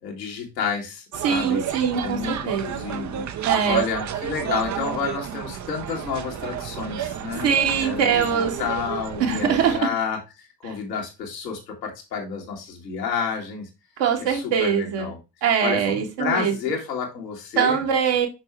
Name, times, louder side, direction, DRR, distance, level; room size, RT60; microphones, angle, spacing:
voice 1, 0.0-1.6 2.0-13.7 14.2-15.2 15.6-17.8, left 6 dB, 80° left, -1 dB, 1.9 m, -30 dB
sound 1, 1.1-9.8, right 9 dB, 35° right, 0.8 m, -31 dB
voice 2, 1.2-2.9 3.5-3.8 7.4-8.6 9.2-9.8 14.0-15.1 15.4-16.5 17.6-18.3, right 7 dB, 60° right, 2 dB, 1.8 m, -22 dB
6.0 x 5.6 x 3.4 m, 0.26 s
figure-of-eight pair, 50°, 49 cm